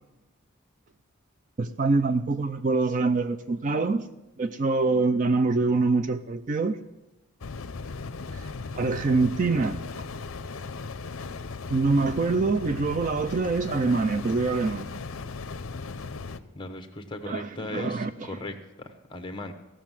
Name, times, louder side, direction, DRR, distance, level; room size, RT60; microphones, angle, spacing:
voice 1, 1.6-4.0 4.4-6.8 8.3-8.4 8.7-9.8 11.7-14.9 17.3-18.1, right 3 dB, 35° right, 0.4 m, -25 dB
sound 1, 7.4-16.4, left 4 dB, 65° left, 0.6 m, -37 dB
voice 2, 16.5-19.5, left 2 dB, 20° left, 1.0 m, -37 dB
16.0 x 6.3 x 7.4 m
head